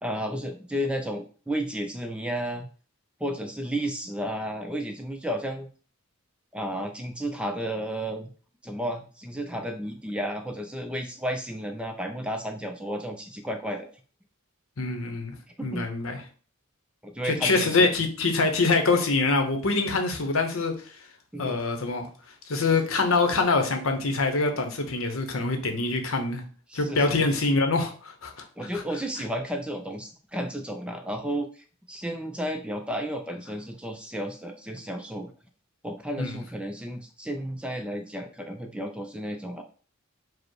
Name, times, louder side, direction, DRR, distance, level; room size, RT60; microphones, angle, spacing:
voice 1, 0.0-2.7 3.2-5.7 6.5-8.3 8.6-13.9 15.6-15.9 17.0-17.9 21.3-21.6 26.7-27.3 28.6-35.3 35.8-39.6, equal, 5° right, 4 dB, 0.3 m, -32 dB
voice 2, 14.8-15.4 15.6-16.2 17.2-20.9 21.4-22.1 22.5-26.4 26.7-28.4 28.7-28.8 36.2-36.4, left 3 dB, 65° left, 5 dB, 0.8 m, -25 dB
5.0 x 2.1 x 4.6 m, 0.39 s
head